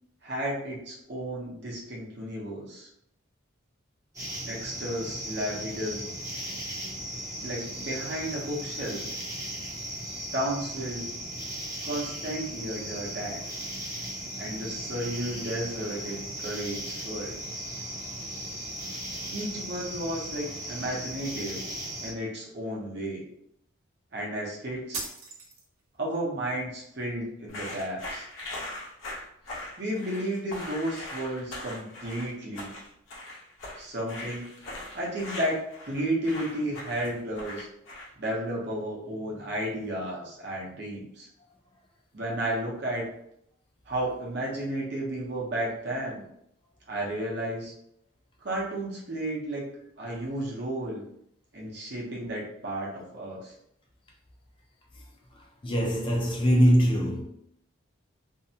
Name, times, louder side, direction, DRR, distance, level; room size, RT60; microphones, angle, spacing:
voice 1, 0.2-2.9 4.4-6.1 7.4-9.0 10.3-11.1 11.8-13.4 14.4-17.4 19.3-21.6 22.0-23.2 24.1-25.0 26.0-28.3 29.8-32.7 33.8-34.5 34.9-37.7 38.2-41.3 42.1-43.1 43.9-46.2 46.9-47.7 48.4-49.7 50.0-51.0 51.5-53.5, right 1 dB, 55° right, 0.8 m, -33 dB
sound 1, 4.1-22.1, right 1 dB, 15° right, 0.7 m, -37 dB
sound 2, 24.9-26.0, right 3 dB, 90° right, 0.7 m, -38 dB
sound 3, 27.5-38.3, left 1 dB, 75° left, 0.9 m, -40 dB
voice 2, 55.6-57.2, equal, 25° left, 0.4 m, -22 dB
2.6 x 2.2 x 2.7 m
head